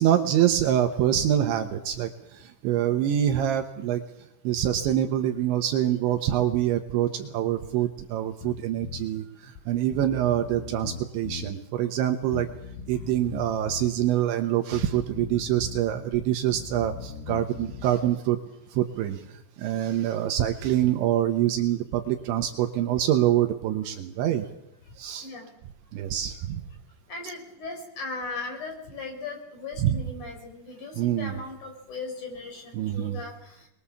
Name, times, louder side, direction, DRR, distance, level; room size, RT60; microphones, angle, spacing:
voice 1, 0.0-4.0 4.4-12.5 12.9-18.4 18.7-24.5 25.0-25.3 25.9-26.7 29.8-30.0 31.0-31.4 32.7-33.2, right 11 dB, 75° right, 6 dB, 3.1 m, -25 dB
Bass guitar, 8.4-9.1 9.6-9.7 9.9-11.5 12.3-13.9 14.7-15.8 16.1-18.0, left 7 dB, 75° left, 4.2 m, -39 dB
voice 2, 27.1-33.5, left 3 dB, 40° left, 3 dB, 5.3 m, -38 dB
24.5 x 21.0 x 7.1 m, 0.82 s
omnidirectional pair, 6.0 m